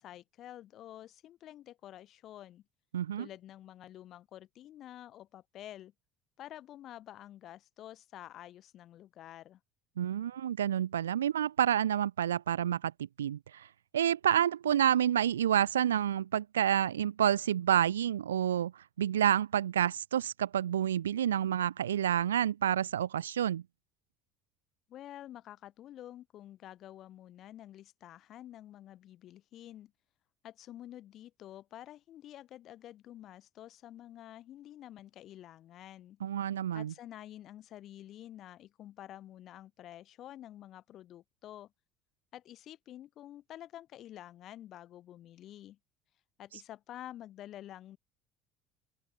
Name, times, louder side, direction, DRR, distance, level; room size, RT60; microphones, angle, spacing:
voice 1, 0.0-2.6 3.2-5.9 6.4-9.6 24.9-29.9 30.4-36.2 36.7-41.7 42.3-45.8 46.4-48.0, left 12 dB, 45° left, 3.8 m, -49 dB
voice 2, 2.9-3.3 10.0-13.7 13.9-23.6 36.2-36.9, right 10 dB, 75° right, 0.5 m, -29 dB
open air
figure-of-eight pair, 60°, 0 cm